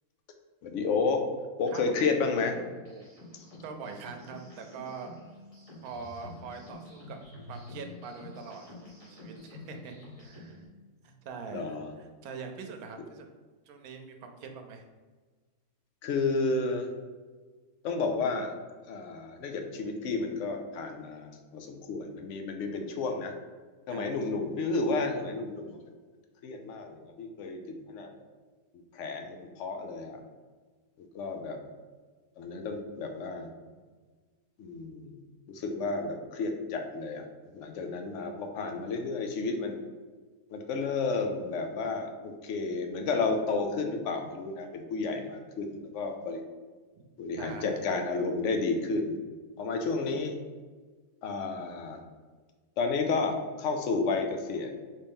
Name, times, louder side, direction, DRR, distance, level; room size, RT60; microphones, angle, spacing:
voice 1, 0.6-1.2 1.6-2.6 3.5-3.6 11.5-11.9 16.0-16.9 17.8-18.5 18.9-23.3 23.9-25.8 26.4-28.1 28.7-30.2 31.0-31.6 32.4-33.5 34.6-35.2 35.5-37.2 37.5-39.8 40.5-46.4 47.2-49.2 49.6-50.3 51.2-52.0 52.8-54.7, left 4 dB, 65° left, 5 dB, 0.9 m, -31 dB
sound 1, 2.4-10.7, left 2 dB, 25° left, 1.3 m, -48 dB
voice 2, 3.6-5.1 5.8-7.2 7.5-10.6 11.0-13.3 13.7-14.8 23.9-24.0 47.0-47.1 47.4-47.9, right 5 dB, 75° right, 5 dB, 1.0 m, -43 dB
4.2 x 3.3 x 3.6 m, 1.4 s
omnidirectional pair, 1.6 m